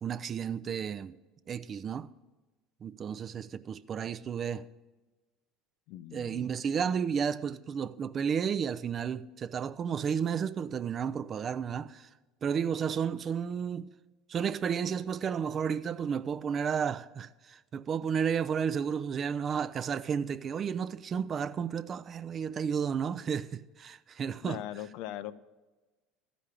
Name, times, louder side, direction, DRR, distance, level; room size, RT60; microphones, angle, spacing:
voice 1, 0.0-1.2 1.5-2.1 2.8-4.7 6.1-12.1 12.4-13.9 14.3-24.6, right 7 dB, 40° right, 0.4 m, -32 dB
voice 2, 5.9-6.5 24.4-25.3, left 13 dB, 65° left, 0.5 m, -40 dB
13.5 x 5.1 x 8.3 m
hypercardioid pair, 75°, 0 cm